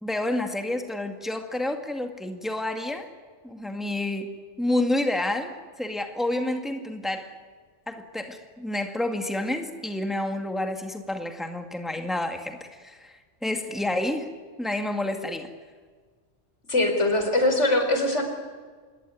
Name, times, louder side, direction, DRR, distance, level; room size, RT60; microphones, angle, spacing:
voice 1, 0.0-3.1 3.4-4.3 4.6-7.3 7.9-13.1 13.4-14.3 14.6-15.5, left 1 dB, ahead, 5 dB, 2.0 m, -29 dB
voice 2, 16.7-18.2, left 1 dB, 85° left, 5 dB, 4.9 m, -22 dB
26.5 x 21.5 x 9.6 m, 1.5 s
omnidirectional pair, 1.2 m